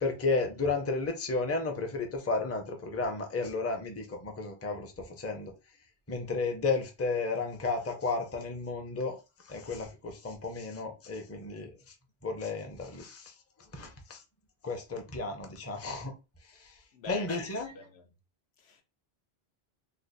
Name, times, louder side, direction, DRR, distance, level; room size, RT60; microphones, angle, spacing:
voice 1, 0.0-5.5 6.1-9.2 9.5-11.7 12.2-13.3 13.7-14.2 14.6-16.1 17.1-17.7, left 3 dB, 20° left, 0.5 m, -33 dB
voice 2, 16.9-18.1 18.6-18.8, left 5 dB, 75° left, 0.9 m, -46 dB
3.2 x 2.1 x 3.9 m
omnidirectional pair, 1.1 m